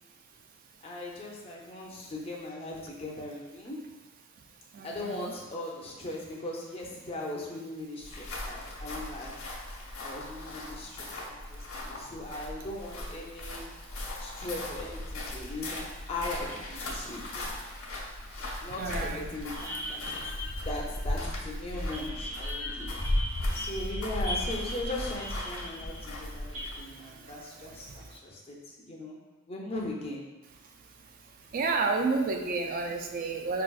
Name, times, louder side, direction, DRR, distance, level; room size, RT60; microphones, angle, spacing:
voice 1, 0.8-3.8 4.8-9.3 10.0-13.7 14.2-17.5 18.6-20.4 20.6-22.9 23.5-29.2 29.5-30.2, left 1 dB, 25° left, -3 dB, 0.5 m, -39 dB
voice 2, 4.7-5.3 18.8-19.2 27.3-27.4 27.6-27.7 31.5-33.6, right 3 dB, 40° right, 3 dB, 0.3 m, -30 dB
sound 1, 8.0-26.9, left 1 dB, 75° left, 0.8 m, -37 dB
sound 2, 19.5-21.4 21.7-26.6, left 1 dB, 80° right, 1.2 m, -39 dB
4.6 x 2.4 x 2.3 m, 1.2 s
head